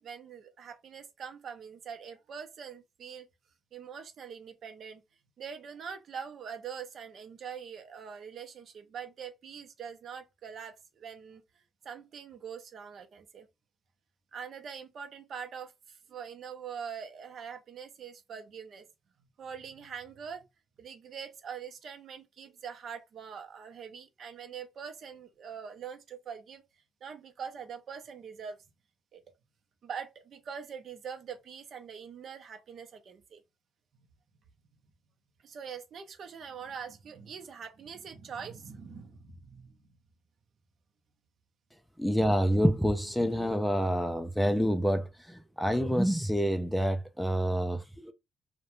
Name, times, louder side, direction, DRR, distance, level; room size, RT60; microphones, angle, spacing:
voice 1, 0.0-3.3 3.7-5.0 5.4-11.4 11.8-13.5 14.3-18.9 19.4-20.4 20.8-26.6 27.0-28.6 29.1-29.2 29.8-33.4 33.9-34.1 35.4-39.9, right 7 dB, 60° right, 0.6 m, -43 dB
voice 2, 42.0-48.1, equal, ahead, 0.4 m, -27 dB
2.4 x 2.1 x 3.0 m
cardioid pair, 90°, 0 cm